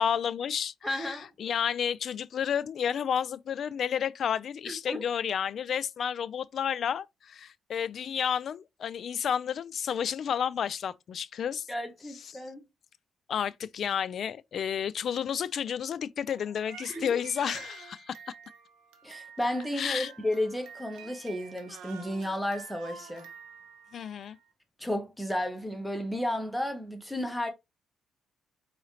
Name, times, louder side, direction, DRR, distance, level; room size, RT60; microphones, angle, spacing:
voice 1, 0.0-11.7 12.2-12.4 13.3-18.2 19.8-20.1 23.9-24.4, left 8 dB, 60° left, 0.3 m, -31 dB
voice 2, 0.8-1.3 4.7-5.0 11.7-12.7 16.9-17.2 19.0-23.3 24.8-27.5, left 1 dB, ahead, 1.0 m, -33 dB
Crying sobbing, 16.3-24.4, right 6 dB, 90° right, 0.7 m, -49 dB
4.7 x 3.1 x 2.8 m
cardioid pair, 90°, 0 cm